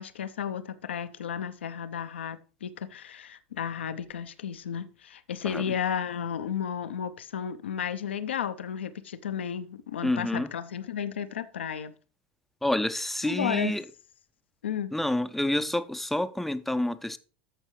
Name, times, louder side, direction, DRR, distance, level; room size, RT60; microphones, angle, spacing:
voice 1, 0.0-11.9 13.2-13.8 14.6-14.9, left 8 dB, 80° left, 0.7 m, -33 dB
voice 2, 10.0-10.5 12.6-13.8 14.9-17.2, left 1 dB, 5° left, 0.7 m, -28 dB
14.0 x 5.3 x 3.2 m
hypercardioid pair, 85°, 6 cm